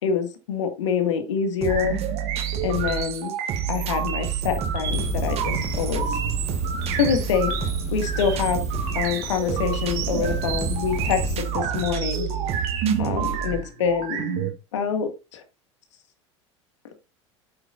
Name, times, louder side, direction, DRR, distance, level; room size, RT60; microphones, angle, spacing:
voice 1, 0.0-2.0 2.6-3.3 3.7-6.2 6.9-7.5 7.9-8.6 8.9-12.3 13.0-14.3 14.7-15.4, left 7 dB, 70° left, 6 dB, 1.9 m, -26 dB
sound 1, 1.6-13.6, right 9 dB, 40° right, 1.4 m, -29 dB
sound 2, 1.7-14.5, right 7 dB, 55° right, 1.8 m, -31 dB
sound 3, 4.8-11.4, left 7 dB, 40° left, 1.3 m, -33 dB
9.8 x 7.9 x 2.5 m, 0.28 s
figure-of-eight pair, 75°, 16 cm